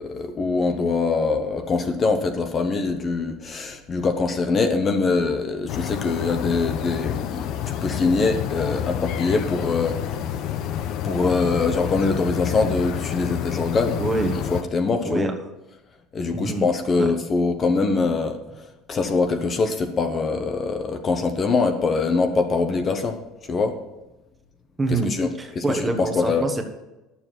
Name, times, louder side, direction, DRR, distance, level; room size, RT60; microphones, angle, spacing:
voice 1, 0.0-10.0 11.0-14.0 14.5-15.3 16.1-23.2 23.5-23.8 24.9-25.3 25.5-26.4, left 4 dB, 30° left, 6 dB, 1.0 m, -23 dB
sound 1, 5.7-14.6, left 10 dB, 60° left, 0.7 m, -29 dB
voice 2, 14.0-14.4 15.0-15.3 16.3-16.7 17.0-17.1 24.8-25.1 25.4-26.6, right 2 dB, 15° right, 5 dB, 1.3 m, -25 dB
11.0 x 7.1 x 5.9 m, 1.0 s
supercardioid pair, 120°, 0 cm